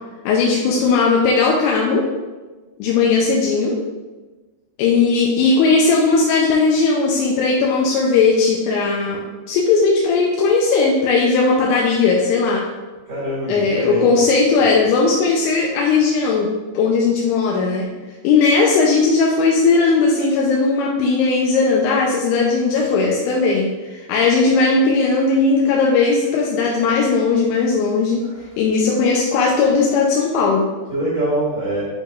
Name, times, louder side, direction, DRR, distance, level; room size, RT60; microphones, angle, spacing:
voice 1, 0.3-2.1 2.8-3.8 4.8-12.7 13.5-16.5 16.7-17.9 18.2-28.2 28.6-30.7, left 4 dB, 80° left, -2 dB, 2.8 m, -17 dB
voice 2, 13.0-14.1 30.9-31.8, right 1 dB, 45° right, -8 dB, 1.5 m, -23 dB
7.2 x 5.8 x 2.4 m, 1.3 s
omnidirectional pair, 5.7 m